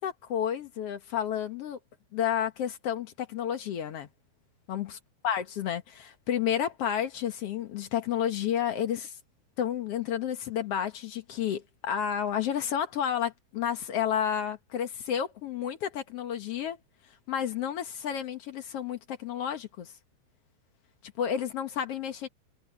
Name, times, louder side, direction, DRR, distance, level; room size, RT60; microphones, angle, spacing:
voice 1, 0.0-1.8 2.1-4.1 4.7-5.0 5.2-9.1 9.6-16.8 17.3-19.9 21.2-22.3, left 9 dB, 70° left, 1.4 m, -31 dB
omnidirectional pair, 4.5 m